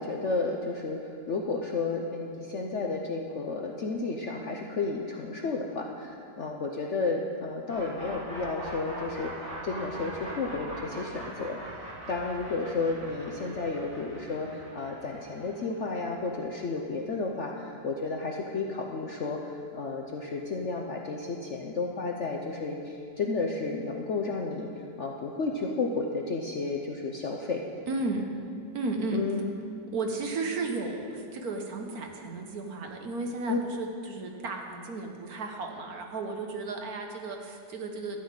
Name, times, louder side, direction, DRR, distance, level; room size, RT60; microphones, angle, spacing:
voice 1, 0.0-11.6 12.1-27.6 29.1-29.5 33.5-33.6, left 3 dB, 55° left, 1 dB, 0.8 m, -32 dB
sound 1, 7.7-17.5, right 1 dB, 35° right, 3.9 m, -42 dB
voice 2, 27.9-28.3 28.7-29.2 29.9-38.2, right 3 dB, 60° right, 3 dB, 1.4 m, -34 dB
12.5 x 5.6 x 8.8 m, 2.4 s
omnidirectional pair, 2.0 m